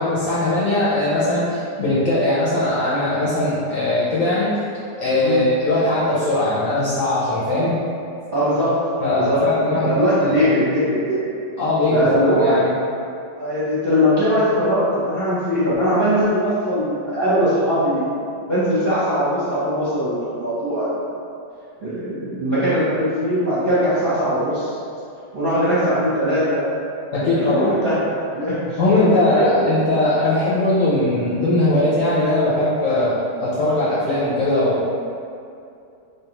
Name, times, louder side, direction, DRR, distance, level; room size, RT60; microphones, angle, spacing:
voice 1, 0.0-4.5 5.0-7.8 9.0-10.5 11.6-12.7 27.1-27.7 28.8-34.9, left 1 dB, 60° left, -9 dB, 0.9 m, -20 dB
voice 2, 8.3-8.7 9.1-9.4 9.7-11.2 11.9-12.6 13.4-18.1 18.5-21.0 21.8-24.8 25.3-26.6 27.2-28.0 28.3-29.7, equal, 45° right, -12 dB, 0.8 m, -20 dB
3.4 x 3.1 x 2.9 m, 2.5 s
omnidirectional pair, 2.0 m